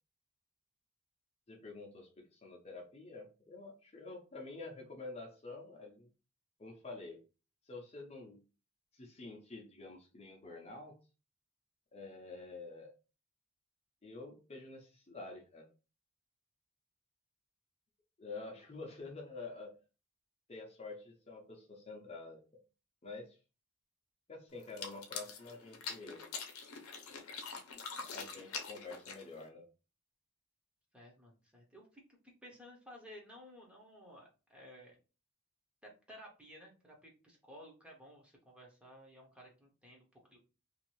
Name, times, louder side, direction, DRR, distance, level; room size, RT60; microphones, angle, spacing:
voice 1, 1.5-6.1 6.6-7.2 7.7-8.4 8.9-11.0 11.9-12.9 14.0-15.7 18.2-19.8 20.5-22.6 23.0-23.4 24.3-26.2 28.1-29.7, left 3 dB, 30° left, 0 dB, 0.6 m, -48 dB
sound 1, 24.6-29.5, left 5 dB, 80° left, 0.6 m, -44 dB
voice 2, 30.9-35.0 35.8-40.4, equal, 5° right, -1 dB, 0.7 m, -55 dB
2.7 x 2.5 x 3.0 m, 0.33 s
head